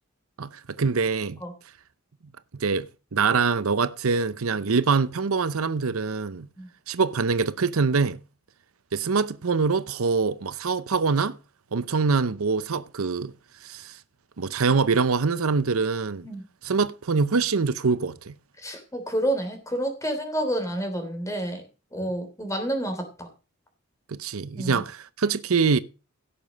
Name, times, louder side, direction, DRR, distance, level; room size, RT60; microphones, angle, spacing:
voice 1, 0.8-1.4 2.5-6.5 6.9-8.2 8.9-11.4 11.7-13.3 13.6-13.9 14.4-16.3 16.6-18.3 24.1-25.8, right 4 dB, 85° right, 0.7 m, -24 dB
voice 2, 18.6-21.6 21.9-23.3 24.5-24.8, right 1 dB, 15° left, 3.3 m, -29 dB
16.5 x 6.9 x 5.2 m
head